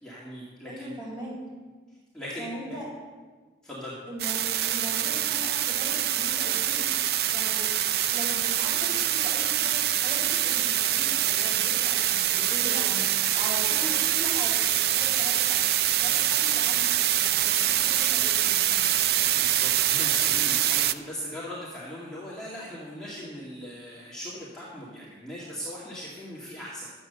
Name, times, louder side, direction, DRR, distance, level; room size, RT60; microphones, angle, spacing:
voice 1, 0.0-1.0 2.1-2.5 3.6-3.9 19.3-26.9, equal, 5° left, -8 dB, 2.2 m, -39 dB
voice 2, 0.6-1.3 2.4-2.9 4.1-6.8 7.3-7.7 8.1-9.7 10.0-15.6 16.0-18.9, equal, 25° right, -4 dB, 4.8 m, -40 dB
sound 1, 4.2-20.9, right 12 dB, 60° right, 0.5 m, -25 dB
12.0 x 8.9 x 6.7 m, 1.4 s
head